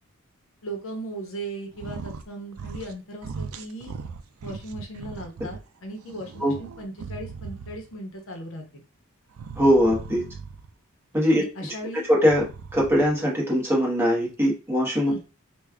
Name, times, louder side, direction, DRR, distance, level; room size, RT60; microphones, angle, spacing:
voice 1, 0.6-4.0 4.4-8.8 11.3-12.0 15.1-15.2, right 1 dB, 65° left, 2 dB, 0.8 m, -37 dB
sound 1, 1.7-2.3 2.5-3.0 3.2-5.6 6.0-7.9 9.3-10.7 12.1-13.2, right 5 dB, 80° right, 0.4 m, -38 dB
voice 2, 9.6-10.2 11.1-11.4 12.1-12.4 12.7-15.2, equal, 10° right, -4 dB, 1.1 m, -21 dB
3.2 x 2.3 x 3.6 m, 0.32 s
head